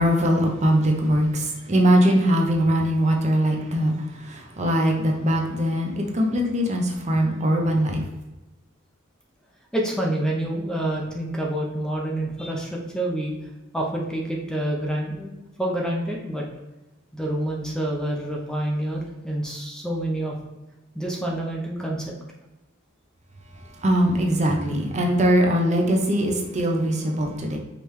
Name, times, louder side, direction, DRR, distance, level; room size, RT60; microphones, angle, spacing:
voice 1, 0.0-3.9 4.2-8.0 23.8-27.6, equal, 35° right, 1 dB, 0.7 m, -21 dB
voice 2, 9.7-13.3 13.7-16.4 17.1-20.3 20.9-22.1, right 1 dB, 5° left, -1 dB, 0.6 m, -27 dB
5.1 x 3.1 x 3.2 m, 1.1 s
head